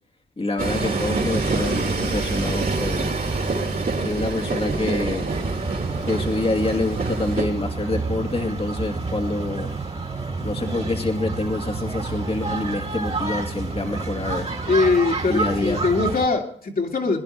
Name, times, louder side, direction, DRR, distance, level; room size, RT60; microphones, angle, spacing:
voice 1, 0.4-3.1 4.0-5.3 6.0-9.7 10.4-14.5 15.3-15.8, left 2 dB, 30° left, 3 dB, 2.3 m, -26 dB
Train, 0.6-7.4, right 3 dB, 45° right, 3.1 m, -26 dB
sound 1, 5.3-16.3, right 3 dB, 30° right, 2.6 m, -29 dB
voice 2, 14.7-17.2, left 3 dB, 45° left, 2 dB, 2.9 m, -22 dB
22.0 x 10.5 x 4.6 m, 0.63 s
supercardioid pair, 45°, 20 cm